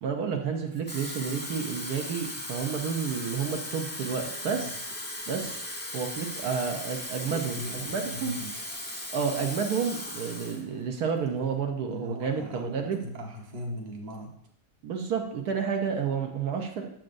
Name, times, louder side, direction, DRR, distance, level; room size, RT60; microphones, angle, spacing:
voice 1, 0.0-4.9 5.3-5.6 5.9-7.6 7.8-8.4 9.1-13.0 14.8-16.9, right 6 dB, 75° right, 3 dB, 1.3 m, -30 dB
Water tap faucet / Fill (with liquid), 0.7-10.6 11.0-11.3, left 1 dB, 10° left, 0.7 m, -37 dB
voice 2, 7.2-8.6 11.8-14.4, equal, 30° right, -1 dB, 1.0 m, -40 dB
7.7 x 7.4 x 2.6 m, 0.71 s
omnidirectional pair, 1.8 m